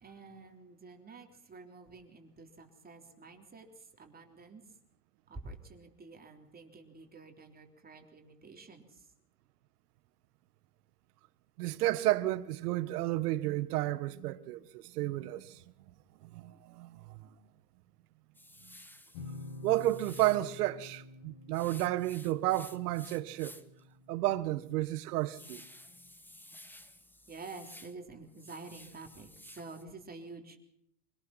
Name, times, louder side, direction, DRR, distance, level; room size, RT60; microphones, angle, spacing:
voice 1, 0.0-4.6 5.3-9.1 27.3-29.3 29.6-30.6, right 3 dB, 20° right, 3.5 m, -49 dB
voice 2, 11.6-15.6 16.2-17.3 19.6-23.6 24.1-25.6, right 16 dB, 80° right, 1.5 m, -32 dB
sound 1, 18.3-20.5 21.5-23.8 24.2-24.3 24.8-28.0 28.3-29.8, left 1 dB, 5° left, 1.2 m, -54 dB
sound 2, 19.1-24.7, left 2 dB, 60° left, 3.4 m, -49 dB
25.5 x 18.0 x 5.8 m
supercardioid pair, 125°, 45 cm